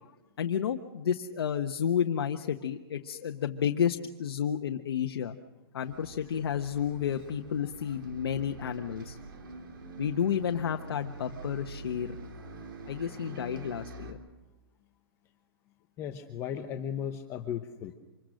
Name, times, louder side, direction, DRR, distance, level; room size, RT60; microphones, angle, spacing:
voice 1, 0.4-5.4 5.7-9.2 10.0-12.2 12.8-14.2, left 8 dB, 70° left, 5 dB, 1.2 m, -31 dB
Bus, 5.8-14.1, right 3 dB, 60° right, 3.7 m, -45 dB
voice 2, 16.0-18.0, left 9 dB, 20° left, 5 dB, 1.0 m, -36 dB
26.0 x 22.5 x 6.5 m, 1.1 s
hypercardioid pair, 160°, 13 cm